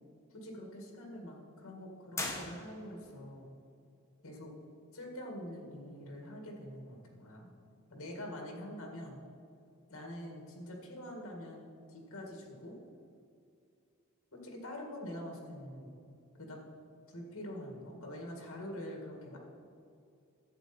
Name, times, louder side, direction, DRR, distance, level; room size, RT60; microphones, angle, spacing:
voice 1, 0.3-3.5 4.2-4.5 4.9-7.5 7.9-9.2 9.9-12.8 14.3-16.0 16.4-16.6 17.1-19.4, left 1 dB, 65° left, 2 dB, 1.9 m, -45 dB
sound 1, 2.1-3.1, left 2 dB, 15° left, 1.1 m, -39 dB
11.0 x 7.8 x 4.3 m, 2.5 s
head